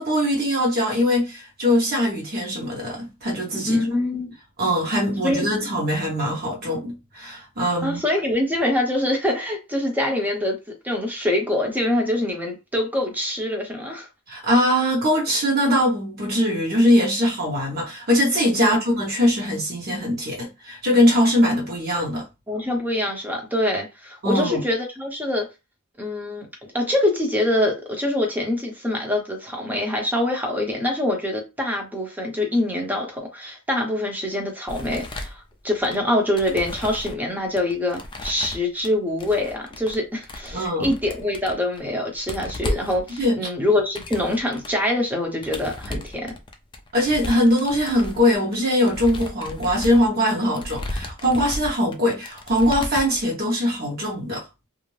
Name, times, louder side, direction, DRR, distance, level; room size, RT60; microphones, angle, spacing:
voice 1, 0.0-3.8 4.6-8.0 14.3-22.2 24.2-24.6 40.5-40.9 43.2-43.4 46.9-54.4, equal, 45° right, 1.0 m, -21 dB
voice 2, 3.7-4.3 5.2-5.5 7.8-14.1 18.6-18.7 22.5-25.5 26.0-26.5 26.7-46.3, left 1 dB, 10° right, 0.7 m, -24 dB
sound 1, 34.7-36.0 36.4-37.2 37.6-38.9 39.2-40.0 40.2-41.9 42.1-44.7 45.4-53.2, left 1 dB, 20° left, 0.3 m, -34 dB
2.5 x 2.0 x 3.1 m
head